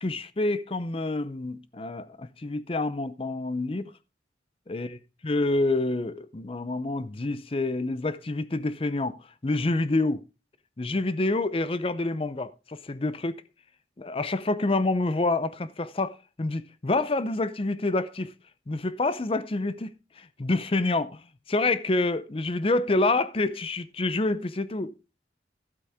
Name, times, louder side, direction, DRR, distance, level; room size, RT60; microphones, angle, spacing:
voice 1, 0.0-3.9 4.7-4.9 5.2-9.2 9.4-10.2 10.8-13.3 14.0-18.3 18.7-19.9 20.2-21.2 21.5-24.9, left 2 dB, 30° left, 0.6 m, -27 dB
12.5 x 8.2 x 3.5 m
head